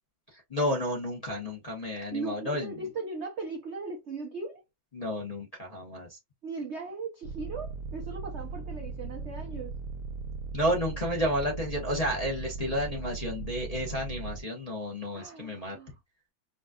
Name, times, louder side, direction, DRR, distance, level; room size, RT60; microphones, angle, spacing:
voice 1, 0.3-2.7 4.9-6.2 10.5-15.8, equal, 35° left, 0.6 m, -31 dB
voice 2, 2.1-4.6 6.4-9.8 15.1-15.9, right 4 dB, 65° right, 0.6 m, -38 dB
sound 1, 7.2-14.4, right 4 dB, 90° right, 1.5 m, -38 dB
5.1 x 2.4 x 2.3 m
omnidirectional pair, 2.1 m